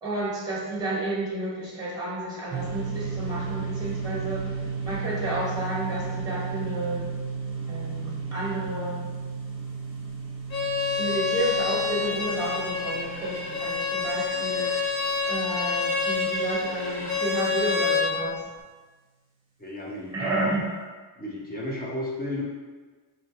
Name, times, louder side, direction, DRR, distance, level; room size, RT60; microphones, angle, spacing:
voice 1, 0.0-4.4 4.8-7.0 7.7-9.0 11.0-14.7 15.3-18.4 20.1-20.6, right 1 dB, 10° right, -6 dB, 1.2 m, -31 dB
sound 1, 2.5-16.0, right 5 dB, 25° right, 0.9 m, -34 dB
Bowed string instrument, 10.5-18.1, left 4 dB, 45° left, 1.0 m, -27 dB
voice 2, 19.6-20.4 21.2-22.4, left 1 dB, 20° left, -4 dB, 0.7 m, -33 dB
4.2 x 2.9 x 2.9 m, 1.3 s
cardioid pair, 125°, 50 cm